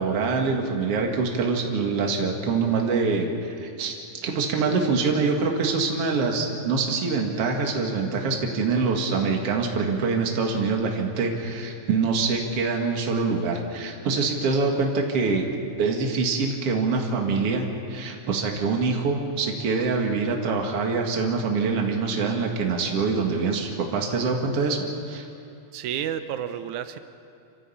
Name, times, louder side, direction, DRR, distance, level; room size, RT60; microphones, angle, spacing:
voice 1, 0.0-4.0 4.2-15.5 15.8-25.2, right 4 dB, 50° right, 1 dB, 2.8 m, -25 dB
voice 2, 25.7-27.0, right 9 dB, 75° right, 10 dB, 2.2 m, -30 dB
27.5 x 14.0 x 8.6 m, 2.6 s
omnidirectional pair, 3.6 m